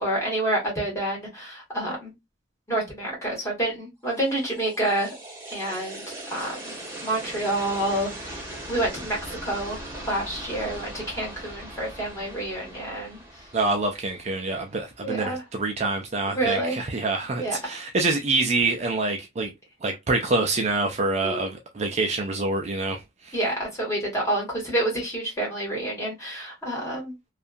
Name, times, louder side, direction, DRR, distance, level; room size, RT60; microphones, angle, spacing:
voice 1, 0.0-2.1 2.7-5.1 5.5-6.7 7.0-8.4 8.7-13.2 15.0-15.4 16.3-16.8 17.4-17.6 21.2-21.4 23.3-27.1, right 1 dB, 15° left, 1.4 m, -28 dB
sound 1, 4.1-15.2, right 1 dB, 15° right, 0.9 m, -40 dB
voice 2, 13.5-19.5 19.8-23.4, right 3 dB, 35° right, 0.4 m, -26 dB
2.7 x 2.3 x 2.4 m
head